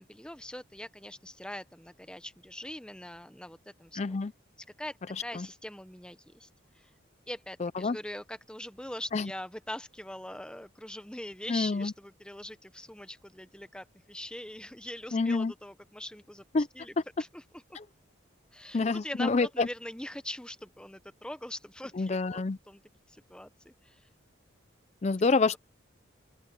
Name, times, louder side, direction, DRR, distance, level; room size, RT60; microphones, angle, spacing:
voice 1, 0.0-4.2 4.8-6.5 6.7-6.9 7.3-16.4 16.7-16.9 17.2-17.8 18.5-22.8 23.1-24.1, left 1 dB, 5° left, 0.9 m, -42 dB
voice 2, 4.0-4.3 5.3-5.5 7.6-8.0 9.1-9.3 11.5-11.9 15.1-15.5 16.5-16.7 17.7-17.8 18.7-19.7 22.0-22.6 25.0-25.6, left 3 dB, 35° left, 0.4 m, -27 dB
open air
head